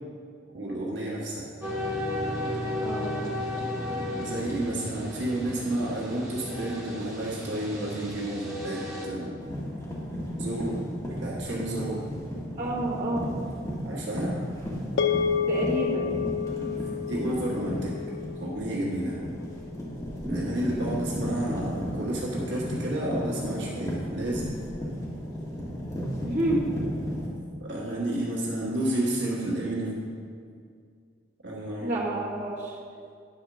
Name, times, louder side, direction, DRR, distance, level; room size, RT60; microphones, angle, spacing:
voice 1, 0.5-1.4 4.2-9.3 10.3-10.8 11.2-12.0 13.8-14.4 17.1-17.9 18.4-19.2 20.2-24.5 27.6-30.0 31.4-32.0, right 1 dB, 70° right, -5 dB, 1.4 m, -31 dB
sound 1, 1.6-9.1, left 1 dB, 15° right, 1.1 m, -33 dB
sound 2, 9.4-27.3, equal, 20° left, 1.4 m, -34 dB
voice 2, 12.6-13.3 15.5-16.1 26.2-26.7 31.8-32.8, right 1 dB, 40° right, -8 dB, 1.8 m, -29 dB
sound 3, 15.0-19.5, left 7 dB, 80° left, 0.5 m, -30 dB
9.6 x 4.4 x 6.1 m, 2.2 s
head